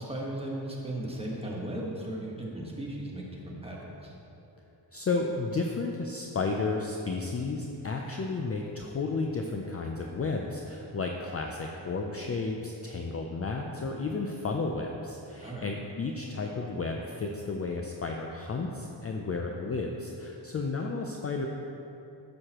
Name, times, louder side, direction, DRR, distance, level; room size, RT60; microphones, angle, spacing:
voice 1, 0.0-4.1 15.4-15.7, right 1 dB, 10° right, -3 dB, 1.3 m, -36 dB
voice 2, 4.9-21.5, left 3 dB, 35° left, 1 dB, 0.4 m, -32 dB
11.0 x 6.3 x 3.0 m, 2.9 s
wide cardioid pair, 110°, 46 cm